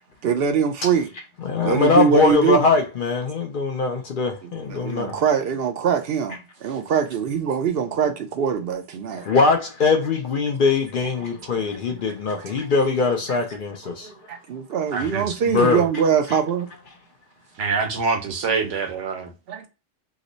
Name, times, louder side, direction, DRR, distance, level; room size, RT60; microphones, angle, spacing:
voice 1, 0.2-1.1 1.6-2.6 4.4-9.3 12.1-12.6 13.3-13.4 13.8-16.7 19.5-19.7, right 7 dB, 65° right, 0.7 m, -23 dB
voice 2, 1.4-5.2 9.2-14.1 15.0-15.1 15.5-15.8, left 4 dB, 55° left, 0.6 m, -21 dB
voice 3, 14.9-15.3 17.6-19.3, right 4 dB, 85° right, 1.1 m, -25 dB
3.0 x 2.0 x 3.7 m
omnidirectional pair, 1.2 m